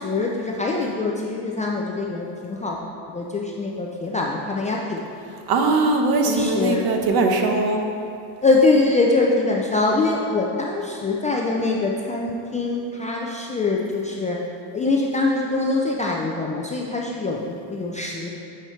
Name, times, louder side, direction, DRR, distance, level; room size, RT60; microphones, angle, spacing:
voice 1, 0.0-2.8 3.1-5.1 6.2-6.9 8.4-14.4 14.7-18.3, left 3 dB, 20° left, -2 dB, 0.3 m, -23 dB
voice 2, 5.5-7.8, right 3 dB, 50° right, 3 dB, 1.0 m, -20 dB
8.7 x 5.6 x 3.2 m, 2.5 s
cardioid pair, 115°, 46 cm